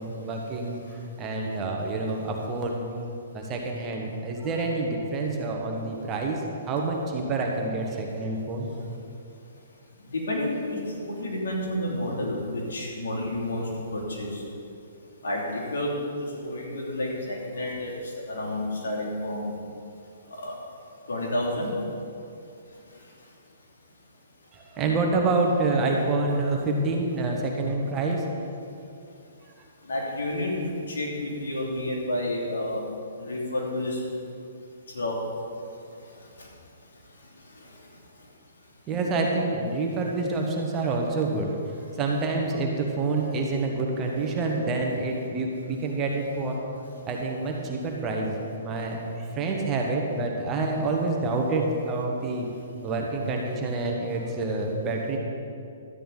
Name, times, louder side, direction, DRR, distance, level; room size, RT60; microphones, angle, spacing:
voice 1, 0.0-2.8 3.3-6.4 6.7-8.7 24.5-28.2 38.9-41.6 42.0-46.6 47.1-52.4 52.8-55.2, right 3 dB, 25° right, 0 dB, 1.5 m, -27 dB
voice 2, 10.0-14.5 15.2-19.5 20.3-20.6 21.1-21.8 22.7-23.3 29.8-32.8 33.2-34.0 34.9-35.3 35.5-36.5 36.9-38.3, left 1 dB, 80° left, -2 dB, 2.8 m, -31 dB
12.5 x 9.2 x 4.0 m, 2.5 s
hypercardioid pair, 135°, 0 cm